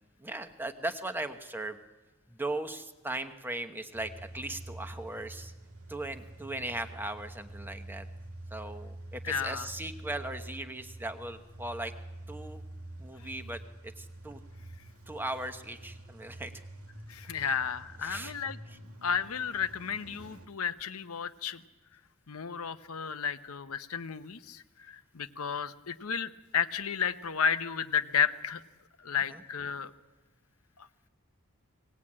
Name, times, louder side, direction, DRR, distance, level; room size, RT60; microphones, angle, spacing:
voice 1, 0.2-1.8 2.3-5.5 5.9-8.1 8.5-11.9 12.3-12.6 13.0-13.6 14.0-14.4 15.1-16.5 17.3-17.6 18.0-18.4 18.7-18.8 29.3-29.4, right 2 dB, 10° right, 7 dB, 1.0 m, -38 dB
Car / Engine starting / Idling, 3.9-20.5, right 1 dB, 85° right, 2.1 m, -47 dB
voice 2, 9.2-9.7 17.1-18.6 19.0-21.6 22.3-28.6 29.0-29.9, left 7 dB, 85° left, 11 dB, 0.9 m, -32 dB
19.5 x 18.0 x 8.7 m, 1.2 s
head